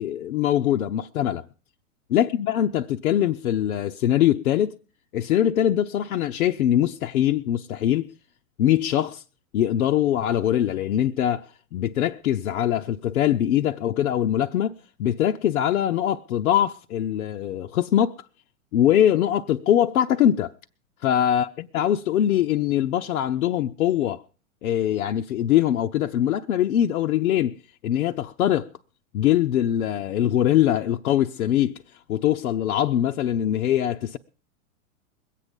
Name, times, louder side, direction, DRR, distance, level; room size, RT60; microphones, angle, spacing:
voice 1, 0.0-1.4 2.1-4.8 5.1-8.1 8.6-9.2 9.5-14.7 15.0-18.1 18.7-20.5 21.0-24.2 24.6-27.5 27.8-28.7 29.1-31.8 32.1-34.2, left 11 dB, 80° left, 0.7 m, -22 dB
21.5 x 8.5 x 5.2 m
hypercardioid pair, 125°, 42 cm